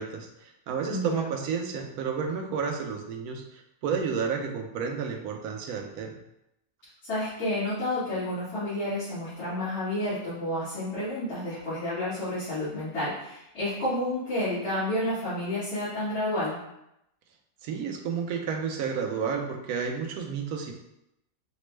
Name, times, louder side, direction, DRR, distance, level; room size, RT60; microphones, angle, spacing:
voice 1, 0.0-6.2 17.6-20.7, right 6 dB, 75° right, 3 dB, 1.1 m, -31 dB
voice 2, 0.9-1.3 7.0-16.6, left 1 dB, 80° left, -14 dB, 2.1 m, -30 dB
5.1 x 2.0 x 3.1 m, 0.83 s
omnidirectional pair, 1.6 m